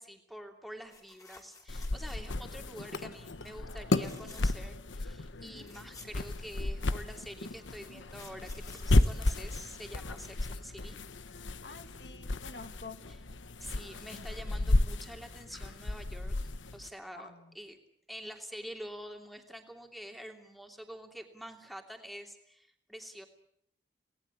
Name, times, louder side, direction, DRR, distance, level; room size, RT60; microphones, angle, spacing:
voice 1, 0.0-11.0 13.6-17.8 18.1-23.3, equal, ahead, 4 dB, 2.9 m, -47 dB
sound 1, 0.9-2.5 2.9-3.2 3.8-4.7 5.1-5.2 5.4-6.9 7.7-10.2 12.1-12.3 12.6-12.7, left 3 dB, 20° left, 3.6 m, -54 dB
sound 2, 1.7-16.9, left 2 dB, 90° left, 1.1 m, -33 dB
voice 2, 5.4-5.7 11.6-13.0 17.1-17.5, left 3 dB, 60° left, 8 dB, 1.7 m, -48 dB
28.0 x 18.5 x 8.5 m, 0.73 s
head